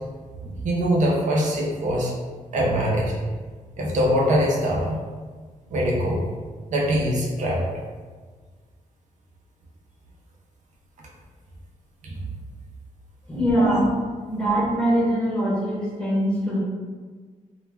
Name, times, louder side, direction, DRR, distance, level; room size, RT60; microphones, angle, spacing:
voice 1, 0.4-2.1 2.5-3.1 3.8-5.0 5.7-6.2 6.7-7.6 12.0-12.1 13.6-13.8, equal, 65° right, -3 dB, 0.5 m, -23 dB
voice 2, 13.3-13.8 14.3-16.6, equal, 5° left, -8 dB, 0.7 m, -22 dB
2.3 x 2.1 x 3.2 m, 1.5 s
wide cardioid pair, 175°, 14 cm